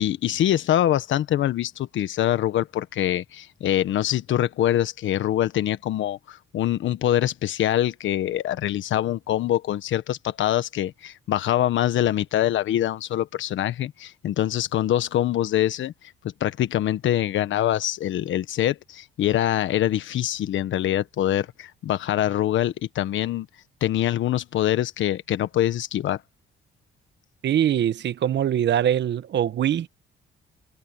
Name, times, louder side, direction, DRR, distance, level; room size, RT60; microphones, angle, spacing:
voice 1, 0.0-15.9 16.4-23.5 23.8-26.2, left 12 dB, 75° left, 1.3 m, -24 dB
voice 2, 27.4-29.9, right 10 dB, 65° right, 1.1 m, -23 dB
cardioid pair, 90°, 20 cm